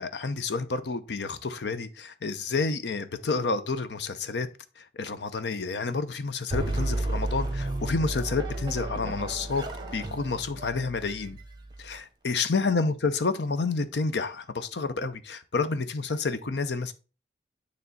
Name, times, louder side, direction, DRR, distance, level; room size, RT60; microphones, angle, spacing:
voice 1, 0.0-4.5 4.8-9.7 9.9-11.4 11.8-16.9, left 4 dB, 80° left, 0.7 m, -29 dB
sound 1, 6.5-12.0, right 2 dB, 25° right, 1.0 m, -33 dB
9.3 x 3.3 x 4.0 m
head